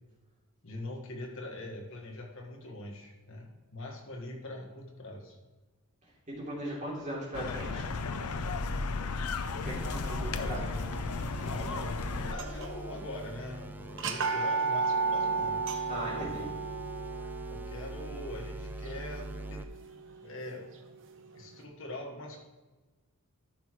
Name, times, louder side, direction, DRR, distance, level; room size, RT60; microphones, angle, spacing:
voice 1, 0.6-5.4 10.3-10.6 11.4-15.6 15.9-16.5 17.5-19.7 20.2-20.7 21.3-22.4, left 1 dB, 60° left, 1 dB, 1.5 m, -42 dB
voice 2, 6.4-7.9 9.6-10.6 15.9-16.4, right 1 dB, 30° right, -5 dB, 3.1 m, -38 dB
sound 1, 7.3-12.3, left 3 dB, 90° left, 0.6 m, -34 dB
sound 2, 9.6-19.6, right 1 dB, 10° right, 0.3 m, -43 dB
sound 3, 12.3-12.9 13.2-13.3 13.9-19.8, right 4 dB, 60° right, 0.9 m, -33 dB
13.5 x 6.0 x 3.1 m, 1.2 s
head